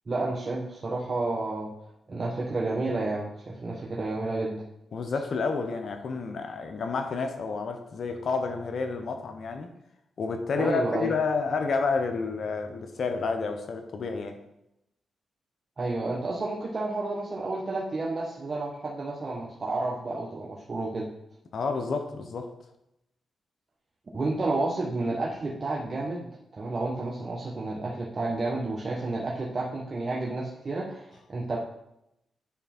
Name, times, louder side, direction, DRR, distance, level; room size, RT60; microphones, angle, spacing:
voice 1, 0.1-1.7 2.1-4.6 10.6-11.1 15.8-21.1 24.1-26.3 26.6-31.6, right 2 dB, 45° right, 1.2 m, -30 dB
voice 2, 4.9-9.7 10.2-14.4 21.5-22.5, left 4 dB, 65° left, 1.0 m, -30 dB
9.7 x 3.5 x 4.3 m
cardioid pair, 60°, 0 cm